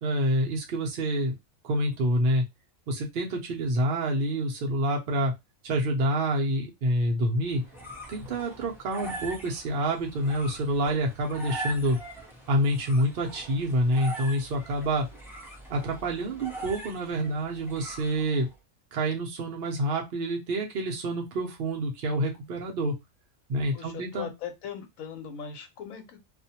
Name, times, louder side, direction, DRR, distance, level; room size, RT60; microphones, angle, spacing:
voice 1, 0.0-1.3 1.6-2.5 2.9-5.3 5.6-7.6 8.1-12.0 12.5-15.1 15.7-18.5 18.9-23.0 23.5-24.3, right 1 dB, 55° right, 0 dB, 0.6 m, -27 dB
sound 1, 7.4-18.5, right 2 dB, 5° right, 0.4 m, -42 dB
voice 2, 23.7-26.2, left 7 dB, 85° left, 6 dB, 1.1 m, -39 dB
2.5 x 2.1 x 2.7 m, 0.20 s
omnidirectional pair, 1.4 m